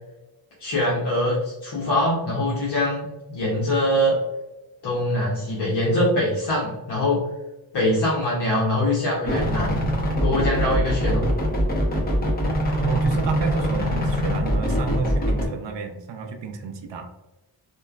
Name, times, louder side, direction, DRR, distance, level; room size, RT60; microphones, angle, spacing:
voice 1, 0.6-4.2 4.8-7.3 7.7-9.9 10.2-11.2, left 1 dB, 60° left, -6 dB, 0.8 m, -23 dB
sound 1, 9.3-15.5, equal, 20° left, 0.6 m, -23 dB
voice 2, 12.8-17.1, right 4 dB, 70° right, 4 dB, 0.5 m, -30 dB
3.0 x 2.2 x 2.3 m, 1.0 s
wide cardioid pair, 110°, 46 cm